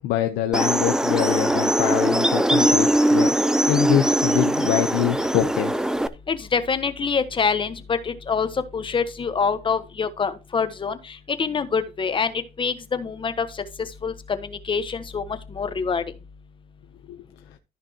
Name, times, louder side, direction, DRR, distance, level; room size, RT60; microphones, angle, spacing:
voice 1, 0.0-3.3 3.7-5.8 17.1-17.2, left 12 dB, 90° left, 0.8 m, -24 dB
sound 1, 0.5-6.1, right 1 dB, 5° right, 0.5 m, -21 dB
voice 2, 6.3-8.5 8.7-11.0 11.4-12.3 12.6-13.5 14.0-14.4 14.7-15.2 15.5-16.0, left 5 dB, 30° left, 1.1 m, -25 dB
14.0 x 5.2 x 2.9 m
cardioid pair, 110°, 17 cm